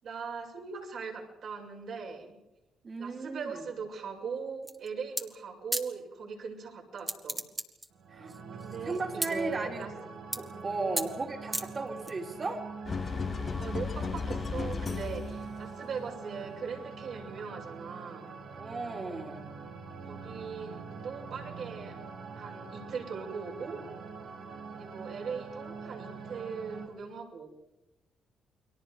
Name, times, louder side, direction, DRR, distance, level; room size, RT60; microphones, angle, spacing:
voice 1, 0.0-2.4 3.0-7.4 8.6-9.9 10.9-11.1 13.6-18.4 20.1-21.9 22.4-23.8 24.7-27.5, right 5 dB, 65° right, 0 dB, 7.2 m, -40 dB
voice 2, 2.8-3.7 8.1-8.3 8.8-9.9 10.4-12.7 18.6-19.5, right 3 dB, 35° right, 2 dB, 3.8 m, -36 dB
sound 1, 4.6-4.9 5.2-5.3 5.7-5.9 7.0-7.9 8.3-9.3 9.8-10.0 10.3-10.6 11.0-11.1 11.5-12.1, right 2 dB, 15° right, 2.2 m, -33 dB
sound 2, 7.9-26.9, right 5 dB, 85° right, 5.2 m, -44 dB
sound 3, 12.9-15.6, left 5 dB, 40° left, 1.0 m, -34 dB
30.0 x 22.5 x 5.1 m, 0.94 s
cardioid pair, 90°, 0 cm